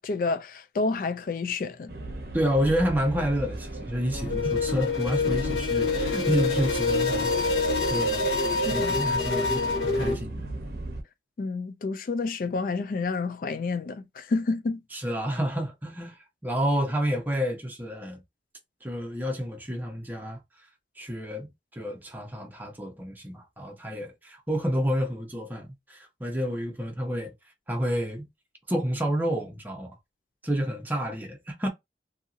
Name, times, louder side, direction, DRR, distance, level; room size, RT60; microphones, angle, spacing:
voice 1, 0.0-1.9 8.7-8.9 11.4-14.8, left 3 dB, 50° left, 0.3 m, -29 dB
sound 1, 1.9-11.0, right 2 dB, 60° right, 0.7 m, -37 dB
voice 2, 2.3-7.3 7.9-8.3 8.7-10.5 14.9-18.2 18.8-20.4 21.0-27.3 27.7-28.3 28.7-29.9 30.4-31.7, equal, 10° right, 0.7 m, -29 dB
sound 2, 4.1-10.1, left 3 dB, 70° left, 1.6 m, -26 dB
2.8 x 2.7 x 2.5 m
head